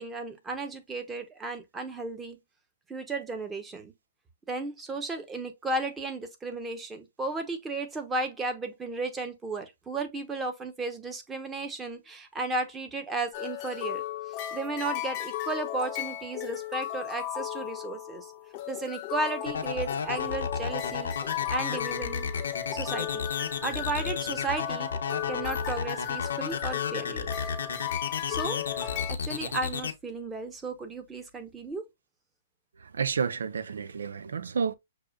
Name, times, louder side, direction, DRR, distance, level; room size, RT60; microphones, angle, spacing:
voice 1, 0.0-2.4 2.9-3.9 4.5-14.0 14.5-18.3 18.7-21.1 21.5-22.3 22.7-23.2 23.6-24.9 25.3-27.3 28.3-31.8, right 3 dB, 15° right, 0.9 m, -34 dB
sound 1, 13.3-29.1, left 12 dB, 40° left, 0.6 m, -36 dB
sound 2, 19.5-29.9, left 6 dB, 85° left, 0.8 m, -32 dB
voice 2, 32.8-34.7, right 6 dB, 85° right, 0.5 m, -30 dB
6.6 x 2.4 x 2.3 m
hypercardioid pair, 140°, 0 cm